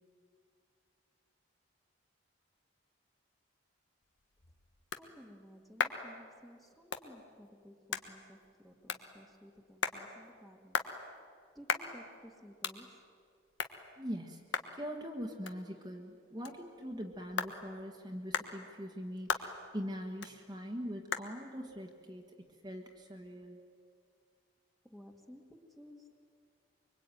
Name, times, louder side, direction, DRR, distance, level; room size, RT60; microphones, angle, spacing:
sound 1, 4.0-23.3, left 5 dB, 65° left, 1.4 m, -42 dB
voice 1, 5.0-10.8 11.5-13.0 24.8-26.2, equal, ahead, 3 dB, 1.9 m, -56 dB
voice 2, 14.0-14.5 14.7-22.2 22.6-23.6, equal, 20° right, 2 dB, 1.6 m, -42 dB
24.5 x 24.0 x 9.2 m, 2.3 s
head